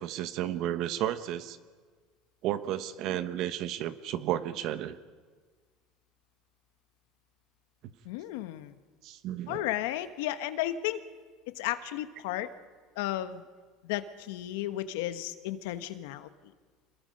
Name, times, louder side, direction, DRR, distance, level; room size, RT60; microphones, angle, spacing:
voice 1, 0.0-1.6 2.4-5.0 9.0-9.6, right 12 dB, 50° right, 12 dB, 1.2 m, -32 dB
voice 2, 8.0-8.8 9.5-11.0 11.5-12.5 12.9-13.4 13.8-16.3, left 13 dB, 85° left, 10 dB, 1.3 m, -33 dB
27.0 x 21.0 x 5.4 m, 1.5 s
cardioid pair, 150°, 0 cm